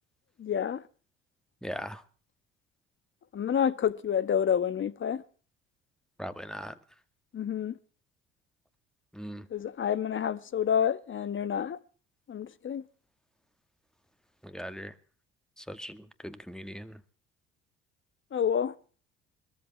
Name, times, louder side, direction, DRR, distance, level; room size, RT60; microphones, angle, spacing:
voice 1, 0.4-0.8 3.3-5.2 7.3-7.8 9.5-11.8 12.3-12.8 18.3-18.7, left 8 dB, 40° left, 1.2 m, -28 dB
voice 2, 1.6-2.0 6.2-6.8 9.1-9.5 14.4-14.9 15.6-17.0, equal, ahead, 2.1 m, -40 dB
22.0 x 14.0 x 4.4 m
hypercardioid pair, 70°, 30 cm